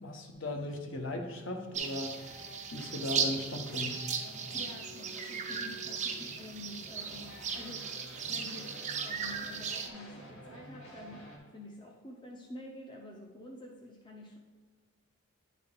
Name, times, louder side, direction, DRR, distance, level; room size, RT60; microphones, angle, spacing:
voice 1, 0.0-2.2 2.7-4.1, left 1 dB, 60° left, 3 dB, 0.9 m, -37 dB
sound 1, 1.6-11.4, right 1 dB, 80° left, 1.9 m, -50 dB
sound 2, 1.7-9.9, right 6 dB, 30° right, 0.5 m, -37 dB
voice 2, 4.5-7.9 8.3-14.4, left 1 dB, 20° left, 0 dB, 0.6 m, -48 dB
9.6 x 3.7 x 3.7 m, 1.5 s
head